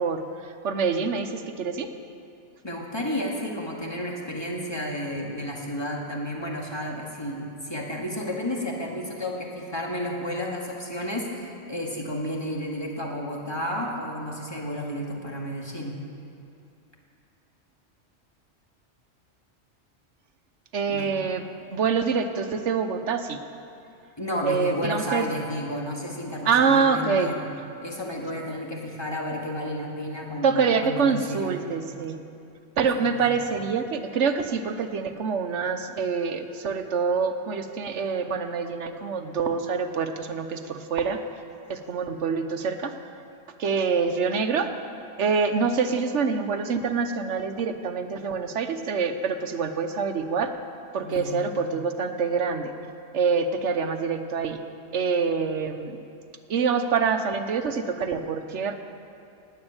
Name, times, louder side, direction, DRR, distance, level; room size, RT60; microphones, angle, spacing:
voice 1, 0.0-1.9 20.7-21.4 21.7-23.4 24.4-25.3 26.4-27.3 30.4-32.2 32.8-41.2 41.7-42.9 43.6-44.7 45.2-50.5 50.9-52.7 53.1-54.6 54.9-56.0 56.5-58.7, right 5 dB, 80° right, 8 dB, 1.3 m, -26 dB
voice 2, 2.6-15.9 20.9-21.2 24.2-27.4 27.8-31.5 33.0-33.2 51.0-51.5, equal, 20° left, -1 dB, 2.2 m, -32 dB
18.5 x 8.0 x 8.8 m, 2.6 s
omnidirectional pair, 1.2 m